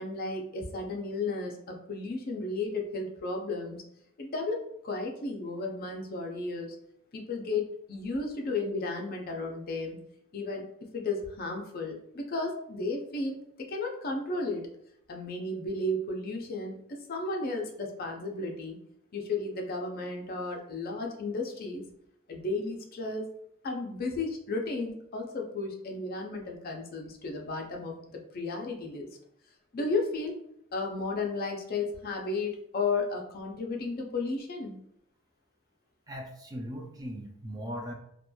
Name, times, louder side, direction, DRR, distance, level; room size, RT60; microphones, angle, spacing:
voice 1, 0.0-3.8 4.2-6.8 7.1-10.0 10.3-10.6 10.9-14.6 15.1-18.8 19.1-21.8 22.3-23.3 23.6-29.1 29.7-30.4 30.7-34.8, left 3 dB, 45° left, 2 dB, 0.4 m, -33 dB
voice 2, 36.1-37.9, equal, 20° right, 1 dB, 0.3 m, -39 dB
2.9 x 2.2 x 2.2 m, 0.75 s
head